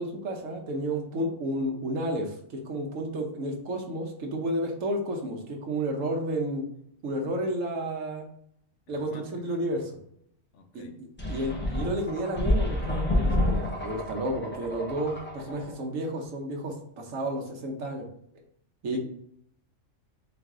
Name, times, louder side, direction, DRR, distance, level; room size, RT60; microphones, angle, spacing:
voice 1, 0.0-6.6 7.0-8.3 8.9-9.9 10.7-18.1 18.8-19.0, right 1 dB, 80° right, 1 dB, 1.2 m, -31 dB
voice 2, 8.9-9.4 10.5-11.0 15.6-15.7 18.9-19.0, left 4 dB, 70° left, 4 dB, 0.9 m, -49 dB
sound 1, 11.2-15.7, left 1 dB, 10° left, 0.6 m, -29 dB
3.9 x 2.5 x 3.6 m, 0.70 s
omnidirectional pair, 1.3 m